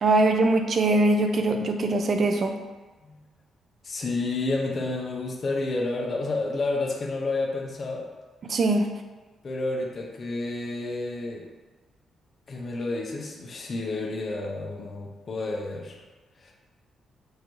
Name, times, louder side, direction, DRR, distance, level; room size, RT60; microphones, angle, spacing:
voice 1, 0.0-2.6 8.5-8.9, right 2 dB, 45° right, 5 dB, 0.5 m, -22 dB
voice 2, 3.8-8.1 9.4-11.4 12.5-16.0 16.4-16.5, left 2 dB, 40° left, -1 dB, 0.6 m, -30 dB
6.3 x 2.6 x 3.1 m, 1.2 s
cardioid pair, 135°, 0 cm